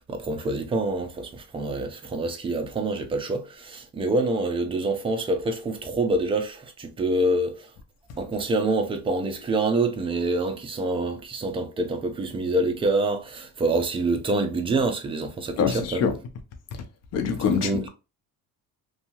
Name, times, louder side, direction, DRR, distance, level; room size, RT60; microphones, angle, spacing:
voice 1, 0.0-7.7 8.2-16.1 17.5-17.8, right 2 dB, 15° right, 0.3 m, -26 dB
voice 2, 15.6-16.2 16.7-16.8 17.1-17.9, left 6 dB, 45° left, 0.6 m, -25 dB
2.6 x 2.3 x 2.8 m
cardioid pair, 145°, 36 cm